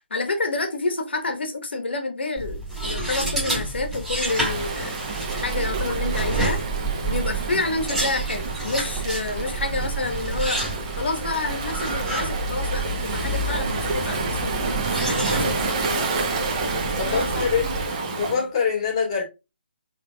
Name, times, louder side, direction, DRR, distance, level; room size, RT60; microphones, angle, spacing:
voice 1, 0.1-6.6 7.0-10.6 11.0-16.2 17.1-17.3 17.6-17.7 18.3-18.5, left 3 dB, 70° left, 1.5 m, -29 dB
sound 1, 2.4-17.8, right 2 dB, 5° right, 1.5 m, -29 dB
Waves surf, 4.3-18.4, right 4 dB, 30° right, 1.0 m, -29 dB
voice 2, 16.6-17.8 18.1-19.2, left 6 dB, 35° left, 1.9 m, -25 dB
4.4 x 3.7 x 2.3 m
hypercardioid pair, 165°, 6 cm